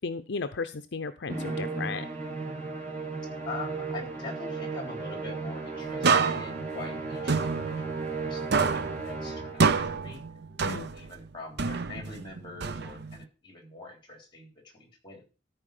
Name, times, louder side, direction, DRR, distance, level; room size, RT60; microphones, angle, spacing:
voice 1, 0.0-2.1 10.6-10.9, left 4 dB, 65° left, 10 dB, 0.6 m, -34 dB
Musical instrument, 1.3-9.8, right 4 dB, 40° right, 3.1 m, -35 dB
voice 2, 3.5-10.2 10.7-15.2, left 2 dB, 25° left, 4 dB, 3.5 m, -44 dB
sound 1, 6.0-8.3 8.5-11.2 11.6-13.2, right 5 dB, 60° right, 0.7 m, -28 dB
14.0 x 4.7 x 6.5 m, 0.34 s
head